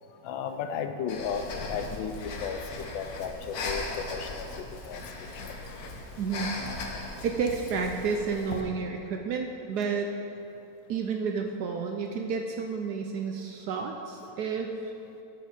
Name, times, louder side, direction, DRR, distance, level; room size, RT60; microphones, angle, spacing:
voice 1, 0.2-5.0 5.3-5.6, left 6 dB, 75° left, 7 dB, 1.3 m, -35 dB
Breathing, 1.1-8.6, left 3 dB, 55° left, 1.2 m, -38 dB
voice 2, 6.2-6.5 7.2-10.1 10.9-14.9, right 5 dB, 75° right, 3 dB, 0.9 m, -31 dB
9.2 x 7.6 x 5.0 m, 2.8 s
omnidirectional pair, 2.2 m